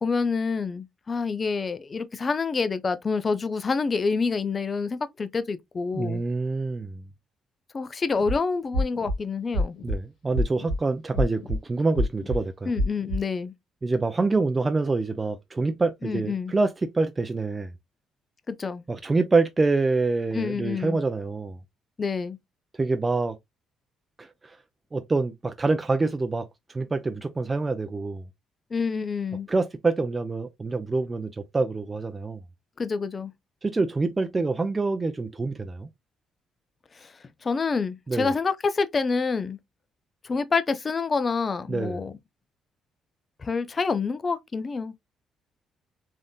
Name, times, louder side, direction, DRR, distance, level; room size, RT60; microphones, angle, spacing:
voice 1, 0.0-6.2 7.7-9.8 12.7-13.5 16.0-16.5 18.5-18.8 20.3-21.0 22.0-22.4 28.7-29.5 32.8-33.3 36.9-37.1 37.4-39.6 40.2-42.1 43.4-45.0, left 4 dB, 40° left, 0.5 m, -27 dB
voice 2, 5.9-7.0 9.8-12.7 13.8-17.7 18.9-21.6 22.8-23.4 24.2-24.6 24.9-28.2 29.5-32.4 33.6-35.9 38.1-38.3 41.7-42.0, right 3 dB, 25° right, 0.4 m, -26 dB
sound 1, 8.1-8.3 8.7-9.2 9.5-10.0 10.3-10.8 11.1-11.6 11.9-12.4 12.8-13.2, left 1 dB, 80° left, 1.4 m, -26 dB
3.4 x 2.7 x 2.2 m
supercardioid pair, 70°, 0 cm